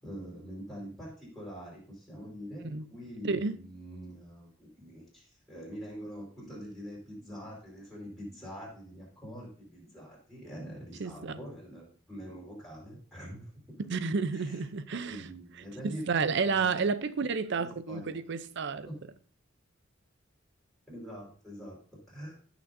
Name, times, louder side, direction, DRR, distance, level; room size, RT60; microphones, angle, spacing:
voice 1, 0.0-13.8 14.3-14.6 15.0-16.0 16.4-16.8 17.5-18.2 18.8-19.0 20.9-22.4, equal, ahead, 4.5 m, -44 dB
voice 2, 3.2-3.6 11.0-11.4 13.9-15.3 15.8-18.9, right 4 dB, 60° right, 0.6 m, -31 dB
16.0 x 6.0 x 2.6 m
head